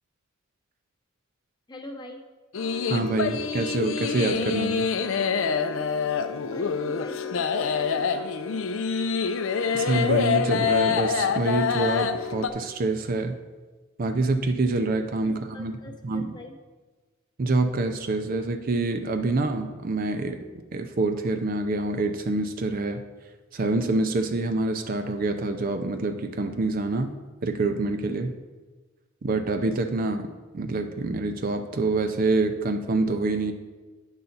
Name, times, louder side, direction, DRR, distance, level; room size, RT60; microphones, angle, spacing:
voice 1, 1.7-2.2 6.4-8.6 15.2-16.6, left 1 dB, 20° left, 2 dB, 0.8 m, -43 dB
sound 1, 2.5-12.5, left 6 dB, 70° left, 0.5 m, -26 dB
voice 2, 2.9-4.9 9.7-13.3 14.0-16.3 17.4-20.4 20.7-23.0 23.5-27.1 27.4-28.3 29.2-30.3 30.5-33.5, right 2 dB, 45° right, 7 dB, 0.5 m, -26 dB
9.8 x 5.6 x 3.9 m, 1.3 s
head